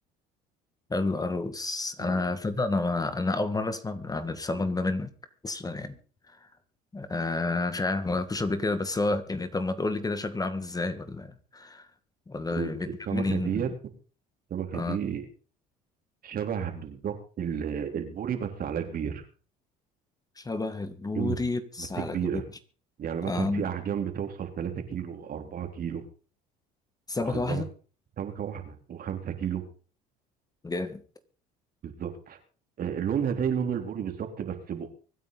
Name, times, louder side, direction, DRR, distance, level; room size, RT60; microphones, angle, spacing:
voice 1, 0.9-5.1 5.4-6.0 6.3-6.5 6.9-11.9 12.3-13.6 14.7-15.0 20.4-22.4 23.2-23.7 27.1-27.7 30.6-31.0, left 3 dB, 20° left, 11 dB, 1.8 m, -30 dB
voice 2, 12.5-13.7 14.5-15.3 16.2-19.2 21.1-21.4 21.8-22.4 23.0-26.0 27.2-27.6 28.2-29.6 31.8-32.4 32.8-34.9, right 8 dB, 50° right, 5 dB, 3.6 m, -32 dB
24.5 x 9.3 x 4.1 m, 0.38 s
supercardioid pair, 80°, 19 cm